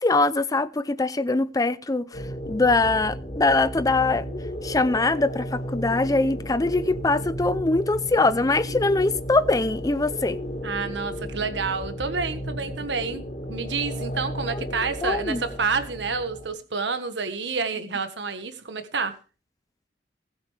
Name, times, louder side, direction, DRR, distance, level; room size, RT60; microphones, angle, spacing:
voice 1, 0.0-4.2 4.6-10.4 15.0-15.4, left 2 dB, 20° left, 0.5 m, -22 dB
sound 1, 2.1-16.5, equal, 40° left, 3.7 m, -34 dB
voice 2, 10.6-13.2 13.5-19.1, right 4 dB, 65° right, 1.5 m, -29 dB
20.0 x 7.9 x 3.4 m
head